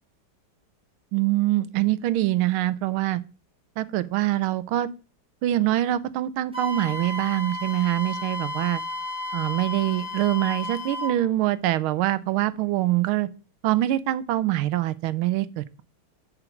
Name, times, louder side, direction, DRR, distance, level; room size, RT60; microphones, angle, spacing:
voice 1, 1.1-3.2 3.8-4.9 5.4-8.8 9.3-13.3 13.6-15.8, right 15 dB, 85° right, 1.4 m, -24 dB
Wind instrument woodwind instrument, 6.5-11.2, left 2 dB, 5° right, 1.5 m, -32 dB
7.8 x 4.5 x 5.8 m
omnidirectional pair, 2.3 m